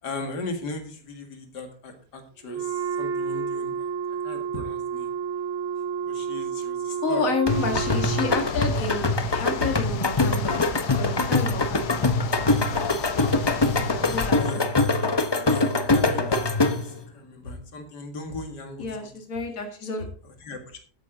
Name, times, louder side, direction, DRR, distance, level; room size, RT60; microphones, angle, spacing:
voice 1, 0.0-3.9 4.2-5.1 6.0-7.3 14.4-14.6 15.5-19.1 20.2-20.8, left 2 dB, 90° left, 5 dB, 2.4 m, -38 dB
Wind instrument woodwind instrument, 2.5-8.6, right 7 dB, 50° right, 0.8 m, -30 dB
voice 2, 7.0-9.1 9.3-10.6 11.0-12.0 14.0-14.6 18.8-20.1, left 3 dB, 55° left, 4 dB, 2.3 m, -29 dB
sound 1, 7.5-14.3, left 6 dB, 75° left, 1.5 m, -34 dB
sound 2, 7.5-17.0, left 2 dB, 30° left, 0.4 m, -23 dB
13.0 x 9.1 x 3.8 m, 0.42 s
omnidirectional pair, 1.7 m